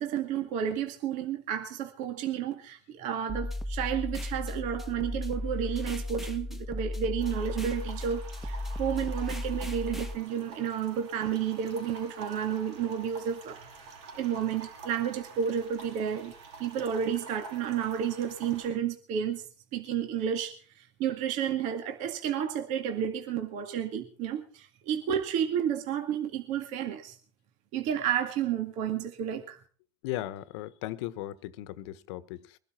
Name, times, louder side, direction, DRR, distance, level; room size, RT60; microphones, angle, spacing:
voice 1, 0.0-13.6 14.2-16.3 16.6-19.5 19.7-27.2 27.7-29.6, right 8 dB, 55° right, 2.1 m, -31 dB
sound 1, 3.3-10.1, left 1 dB, ahead, 1.3 m, -35 dB
sound 2, 7.2-18.7, right 4 dB, 85° right, 7.4 m, -48 dB
voice 2, 30.0-32.6, left 14 dB, 70° left, 1.2 m, -37 dB
22.5 x 12.0 x 4.4 m
supercardioid pair, 115°, 15 cm